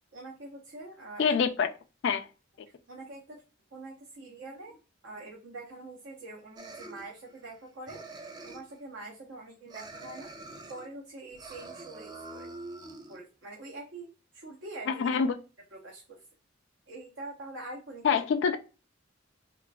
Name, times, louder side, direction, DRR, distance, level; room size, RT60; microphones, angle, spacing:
voice 1, 0.1-1.3 2.9-3.4 3.7-4.8 5.0-8.0 8.4-10.3 10.7-12.5 13.1-14.1 14.3-15.2 15.7-16.2 16.9-18.2, right 2 dB, 75° right, 0.8 m, -44 dB
voice 2, 1.2-1.7 2.0-2.3 14.9-15.4 18.0-18.6, left 6 dB, 65° left, 0.3 m, -25 dB
sound 1, 6.6-7.6 7.9-8.8 9.7-10.9 11.3-13.2, right 2 dB, 20° right, 0.3 m, -45 dB
3.8 x 2.4 x 2.2 m
head